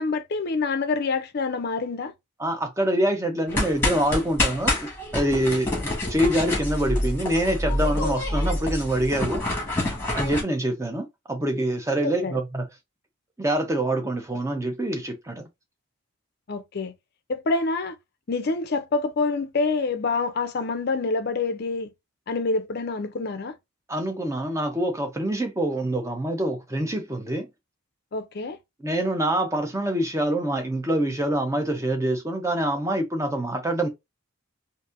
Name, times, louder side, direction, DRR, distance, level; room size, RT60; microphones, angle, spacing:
voice 1, 0.0-2.1 12.2-12.4 16.5-16.9 17.3-18.0 18.3-21.9 22.3-23.5 28.1-28.6, left 3 dB, 45° left, 0.5 m, -26 dB
voice 2, 2.4-4.9 5.1-9.4 10.2-12.7 13.4-15.5 23.9-27.5 28.8-33.9, right 1 dB, 15° right, 0.6 m, -25 dB
sound 1, 3.5-10.4, left 1 dB, 10° left, 1.4 m, -27 dB
4.0 x 2.6 x 2.5 m
head